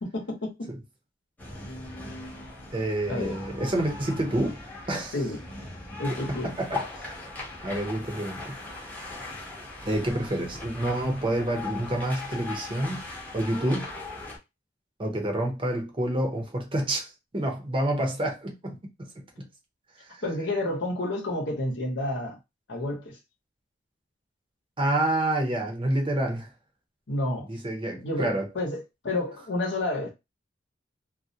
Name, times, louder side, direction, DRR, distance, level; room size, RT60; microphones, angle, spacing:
voice 1, 0.1-0.7 3.1-3.4 5.1-5.4 6.0-6.5 7.7-7.8 20.2-22.4 22.7-23.2 27.1-27.5 28.0-30.1, left 1 dB, 80° left, 0.8 m, -30 dB
sound 1, 1.4-14.4, left 2 dB, 10° left, 0.7 m, -39 dB
voice 2, 2.7-4.6 4.9-5.2 6.4-7.1 7.6-8.5 9.9-13.0 13.3-13.9 15.0-18.8 19.2-19.3 20.1-20.2 24.8-26.5 27.5-28.5, right 1 dB, 30° right, 0.6 m, -28 dB
2.3 x 2.1 x 2.7 m
head